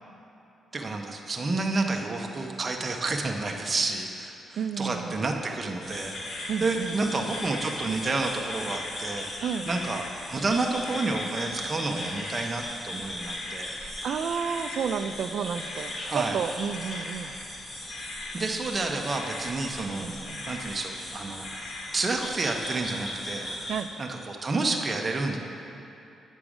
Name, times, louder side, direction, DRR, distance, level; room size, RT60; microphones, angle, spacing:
voice 1, 0.7-9.3 9.6-13.8 16.1-16.4 18.3-20.1 20.5-21.4 21.9-23.5 24.0-25.4, right 3 dB, 25° right, 2 dB, 0.6 m, -30 dB
voice 2, 4.6-5.2 6.5-6.9 9.4-9.7 14.0-17.3 20.0-20.4 23.7-23.9, right 7 dB, 60° right, 9 dB, 0.3 m, -31 dB
sound 1, 5.8-23.8, left 1 dB, 30° left, 1.2 m, -38 dB
sound 2, 6.1-8.2 8.5-15.3 15.5-18.8 19.1-20.0 20.2-22.1, left 3 dB, 55° left, 0.7 m, -42 dB
8.8 x 6.2 x 4.9 m, 2.8 s
cardioid pair, 160°, 0 cm